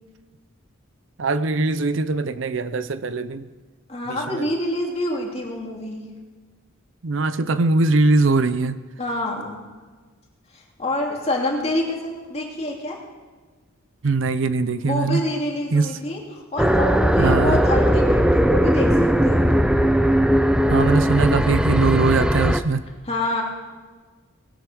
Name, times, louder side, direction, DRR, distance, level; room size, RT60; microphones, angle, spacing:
voice 1, 1.2-3.5 4.1-4.5 7.0-8.8 14.0-15.2 15.7-16.0 17.2-17.6 20.7-22.9, right 3 dB, 65° right, 13 dB, 0.6 m, -21 dB
voice 2, 3.9-6.1 9.0-9.6 10.5-13.0 14.8-19.7 23.1-23.4, left 1 dB, 30° left, -1 dB, 2.6 m, -27 dB
sound 1, 16.6-22.6, equal, 5° right, 0.5 m, -18 dB
19.5 x 8.3 x 6.2 m, 1.4 s
head